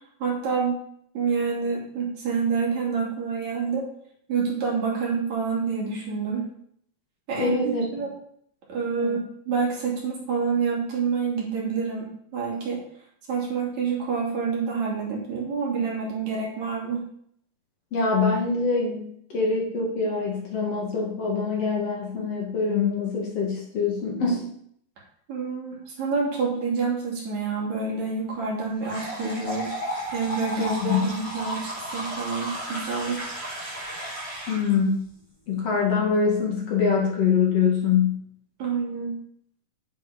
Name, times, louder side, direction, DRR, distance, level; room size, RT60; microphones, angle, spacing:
voice 1, 0.2-0.8 1.1-3.9 4.3-6.4 7.3-8.1 8.7-9.2 9.5-12.8 13.3-17.0 25.3-29.7 30.1-33.3 38.6-39.1, right 5 dB, 60° right, -3 dB, 4.0 m, -27 dB
voice 2, 7.4-7.9 9.0-9.2 17.9-24.5 30.5-31.0 34.5-35.0 35.5-38.2, left 5 dB, 50° left, -1 dB, 2.9 m, -24 dB
sound 1, 28.8-34.7, equal, 20° left, 4.8 m, -33 dB
9.5 x 7.9 x 5.1 m, 0.66 s
omnidirectional pair, 3.7 m